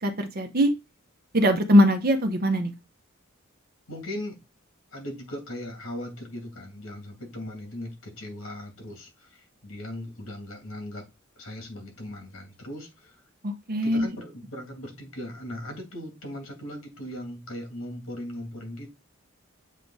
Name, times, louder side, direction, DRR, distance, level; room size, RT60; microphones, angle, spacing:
voice 1, 0.0-0.7 1.3-2.7 13.4-14.1, equal, 45° right, 0.9 m, -21 dB
voice 2, 3.9-4.4 4.9-11.0 11.4-13.2 13.8-18.9, left 1 dB, 85° left, 2.7 m, -38 dB
7.4 x 3.6 x 4.0 m
head